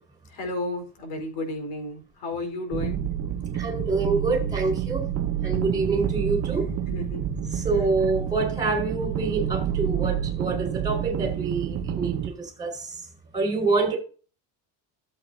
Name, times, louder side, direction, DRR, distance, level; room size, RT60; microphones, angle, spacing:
voice 1, 0.3-3.1 6.9-7.7, left 2 dB, 70° left, 4.6 m, -33 dB
sound 1, 2.7-12.3, right 9 dB, 35° right, 0.9 m, -28 dB
voice 2, 3.5-5.1 5.4-6.7 7.5-12.9 13.3-14.0, right 3 dB, 10° right, 4.9 m, -26 dB
13.5 x 8.4 x 2.8 m
cardioid pair, 155°, 43 cm